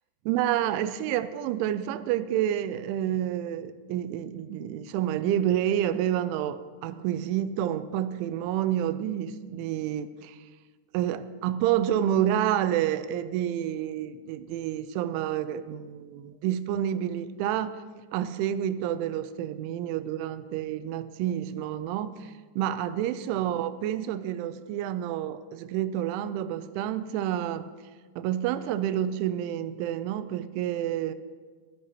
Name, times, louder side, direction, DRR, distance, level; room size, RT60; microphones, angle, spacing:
voice 1, 0.3-10.5 10.9-17.8 18.1-27.7 28.2-31.1, right 11 dB, 85° right, 13 dB, 2.9 m, -29 dB
21.0 x 12.5 x 3.0 m, 1.5 s
omnidirectional pair, 5.6 m